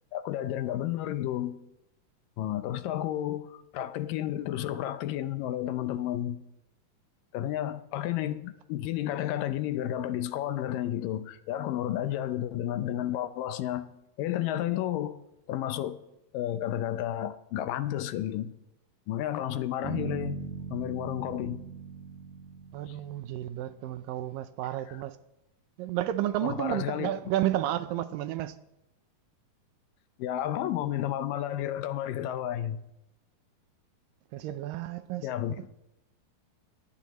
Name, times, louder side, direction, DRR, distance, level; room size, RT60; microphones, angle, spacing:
voice 1, 0.1-1.6 2.4-6.4 7.3-13.9 14.2-15.2 15.5-16.0 16.3-18.5 19.1-20.4 20.7-21.6 22.9-23.0 24.9-25.0 26.4-27.1 30.2-32.8 35.2-35.7, left 12 dB, 80° left, 2.3 m, -31 dB
Bass guitar, 19.8-23.9, right 7 dB, 60° right, 2.6 m, -40 dB
voice 2, 22.7-25.2 25.8-28.6 34.3-35.3 35.6-35.7, right 13 dB, 80° right, 2.4 m, -31 dB
22.0 x 17.0 x 3.1 m
omnidirectional pair, 4.1 m